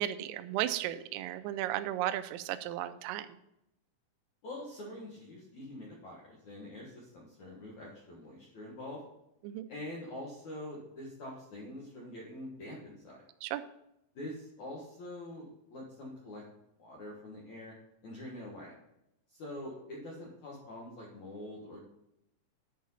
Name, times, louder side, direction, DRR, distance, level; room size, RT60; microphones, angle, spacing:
voice 1, 0.0-3.3 9.4-9.6 13.4-13.6, right 13 dB, 90° right, 11 dB, 3.2 m, -34 dB
voice 2, 4.4-9.0 9.7-13.2 14.1-16.4 16.8-17.7 18.0-18.7 19.3-21.8, left 1 dB, 65° left, -3 dB, 1.8 m, -45 dB
10.5 x 4.7 x 5.5 m, 0.83 s
omnidirectional pair, 5.8 m